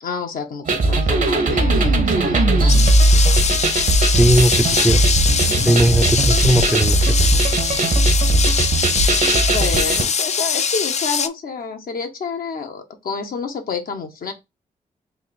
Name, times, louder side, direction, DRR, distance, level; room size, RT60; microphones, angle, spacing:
voice 1, 0.0-2.7 5.4-6.0 9.5-14.3, left 5 dB, 70° left, 0.9 m, -29 dB
sound 1, 0.7-10.0, right 2 dB, 60° right, 1.0 m, -18 dB
sound 2, 2.7-11.3, left 6 dB, 45° left, 0.4 m, -22 dB
voice 2, 4.1-5.1 5.6-7.1, right 1 dB, 5° right, 0.5 m, -18 dB
3.6 x 2.5 x 4.1 m
cardioid pair, 55°, 16 cm